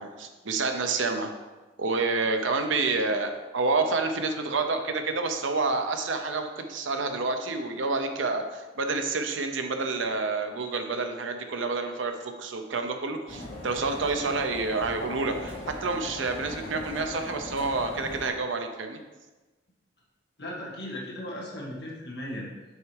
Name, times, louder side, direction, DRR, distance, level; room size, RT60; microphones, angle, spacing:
voice 1, 0.0-1.3 1.8-19.0, right 3 dB, 85° right, 6 dB, 0.7 m, -28 dB
sound 1, 13.3-18.3, left 1 dB, 75° left, 1.9 m, -39 dB
voice 2, 20.4-22.5, left 1 dB, 55° left, -4 dB, 1.8 m, -37 dB
6.5 x 4.7 x 4.7 m, 1.2 s
head